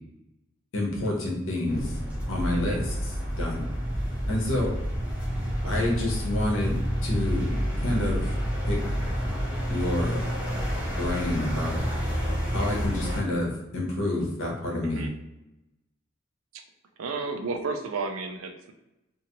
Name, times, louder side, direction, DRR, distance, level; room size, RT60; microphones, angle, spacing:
voice 1, 0.7-1.9 2.3-3.6 4.3-4.7 5.7-8.3 8.6-8.8 9.7-10.2 11.0-11.8 12.5-15.1, left 1 dB, 75° left, -2 dB, 0.9 m, -28 dB
sound 1, 1.7-13.2, equal, 5° right, 0.7 m, -29 dB
voice 2, 2.5-2.8 5.6-5.9 14.8-15.1 16.5-16.6 17.0-18.7, right 4 dB, 85° right, 5 dB, 0.4 m, -33 dB
2.7 x 2.6 x 2.9 m, 0.94 s
head